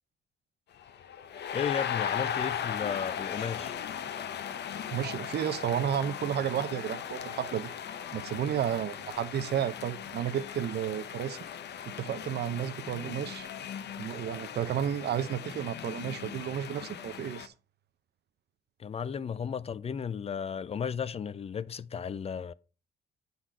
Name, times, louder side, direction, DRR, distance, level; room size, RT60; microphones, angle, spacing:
sound 1, 0.8-17.5, left 9 dB, 60° left, 0.7 m, -38 dB
voice 1, 1.5-3.8 18.8-22.5, left 7 dB, 30° left, 0.4 m, -34 dB
voice 2, 4.9-7.7 8.1-11.5 12.0-13.5 14.0-17.5, right 10 dB, 55° right, 0.6 m, -32 dB
8.2 x 4.0 x 4.4 m
cardioid pair, 90°, 20 cm